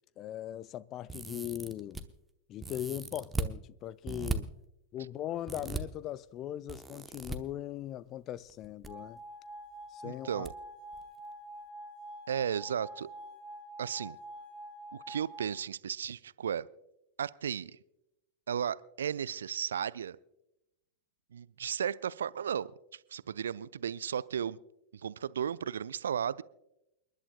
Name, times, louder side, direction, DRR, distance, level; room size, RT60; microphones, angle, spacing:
voice 1, 0.2-2.1 2.5-4.5 4.9-9.2 9.9-10.5, left 12 dB, 35° left, 0.4 m, -39 dB
sound 1, 1.1-2.0 2.6-3.5 4.1-4.4 5.5-5.8 6.7-7.4 8.5-8.9 9.2-9.3 10.4-10.5 10.9-11.0, right 3 dB, 10° right, 0.9 m, -37 dB
sound 2, 8.8-15.5, right 1 dB, 50° left, 6.2 m, -47 dB
voice 2, 10.0-10.5 12.3-13.1 13.8-14.2 14.9-16.7 17.2-17.8 18.5-20.2 21.3-24.6 25.0-26.4, right 8 dB, 65° right, 0.3 m, -34 dB
29.0 x 11.5 x 2.2 m
figure-of-eight pair, 90°, 0 cm